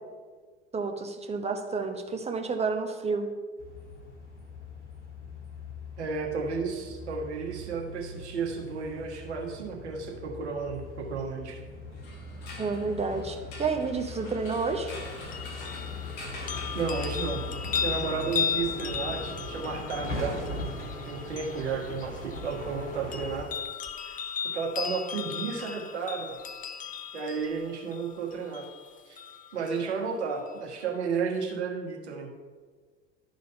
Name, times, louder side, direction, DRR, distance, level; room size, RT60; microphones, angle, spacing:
voice 1, 0.7-3.3 12.6-14.9, right 4 dB, 20° right, 5 dB, 1.0 m, -30 dB
sound 1, 3.6-23.4, left 2 dB, 80° left, 2.1 m, -40 dB
voice 2, 6.0-11.6 16.7-17.4 17.8-20.7 21.0-23.5 24.0-24.2 24.5-26.4 27.1-28.6 29.1-29.2 29.5-32.3, right 5 dB, 70° right, 0 dB, 1.6 m, -33 dB
sound 2, 11.9-17.6, left 2 dB, 55° left, 2.1 m, -45 dB
sound 3, 14.9-29.9 30.5-30.6, left 7 dB, 25° left, 0.6 m, -36 dB
11.5 x 4.1 x 5.5 m, 1.5 s
figure-of-eight pair, 70°, 35 cm